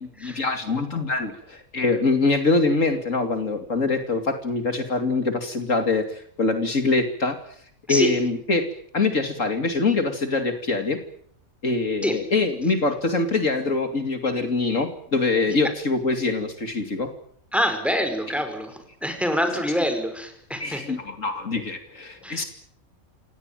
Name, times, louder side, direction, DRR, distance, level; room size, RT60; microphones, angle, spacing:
voice 1, 0.2-7.4 7.9-8.7 8.9-11.0 11.6-17.1 20.6-22.4, left 3 dB, 65° left, 7 dB, 2.9 m, -24 dB
voice 2, 17.5-21.0 22.2-22.5, equal, ahead, 7 dB, 5.1 m, -26 dB
27.5 x 18.5 x 9.0 m, 0.66 s
omnidirectional pair, 1.4 m